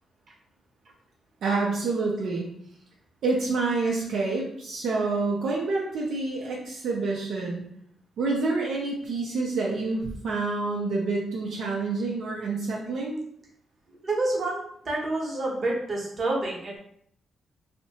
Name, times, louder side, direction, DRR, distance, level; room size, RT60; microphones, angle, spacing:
voice 1, 1.4-2.5 3.2-7.6 8.2-13.2, right 3 dB, 75° right, -3 dB, 0.5 m, -28 dB
voice 2, 14.0-16.8, right 2 dB, 45° right, -3 dB, 0.8 m, -28 dB
2.7 x 2.1 x 2.8 m, 0.67 s
cardioid pair, 100°, 0 cm